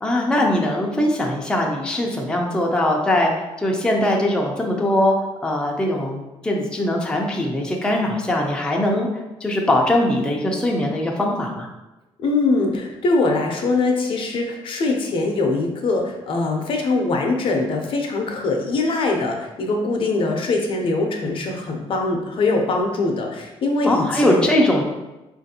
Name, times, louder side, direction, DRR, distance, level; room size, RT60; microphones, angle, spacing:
voice 1, 0.0-5.1 5.4-9.1 9.4-11.7 23.8-24.8, left 1 dB, 10° left, -1 dB, 0.5 m, -21 dB
voice 2, 12.2-24.5, left 3 dB, 55° left, 2 dB, 0.6 m, -22 dB
4.3 x 2.5 x 2.7 m, 1.0 s
cardioid pair, 115°, 11 cm